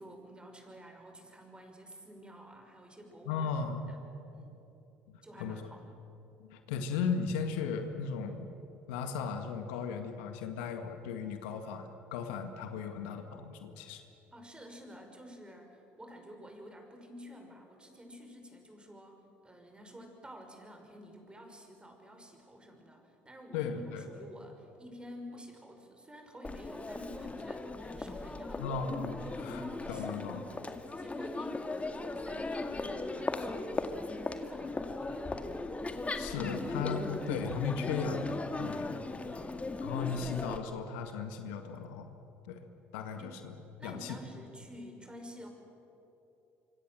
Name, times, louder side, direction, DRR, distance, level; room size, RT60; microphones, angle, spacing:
voice 1, 0.0-3.5 3.9-4.0 4.3-4.6 5.2-5.9 14.3-28.7 29.2-35.6 39.2-39.5 43.2-43.4 43.8-45.5, equal, 15° right, 4 dB, 5.7 m, -50 dB
voice 2, 3.3-3.8 5.1-5.6 6.4-8.5 8.9-14.0 23.5-24.0 28.6-30.4 36.1-39.0 39.8-42.2 42.4-42.6 42.9-43.5 43.8-44.2, left 6 dB, 80° left, 7 dB, 1.9 m, -36 dB
Crowd, 26.4-40.6, left 2 dB, 20° left, 2.1 m, -38 dB
25.5 x 25.5 x 7.7 m, 3.0 s
hypercardioid pair, 60°, 6 cm